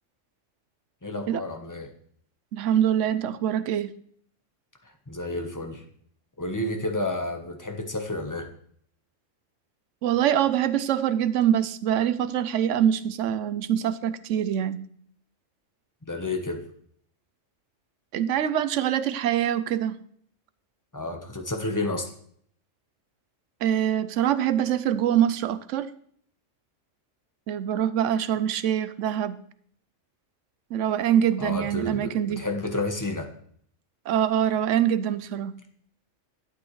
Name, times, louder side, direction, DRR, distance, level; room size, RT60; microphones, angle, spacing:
voice 1, 1.0-1.9 5.1-5.8 6.4-8.5 16.1-16.6 20.9-22.1 31.4-33.3, left 2 dB, 15° left, 4 dB, 1.0 m, -30 dB
voice 2, 2.5-3.9 10.0-14.8 18.1-20.0 23.6-25.9 27.5-29.4 30.7-32.4 34.1-35.6, right 10 dB, 80° right, 14 dB, 0.9 m, -24 dB
12.0 x 8.6 x 3.2 m, 0.62 s
omnidirectional pair, 1.3 m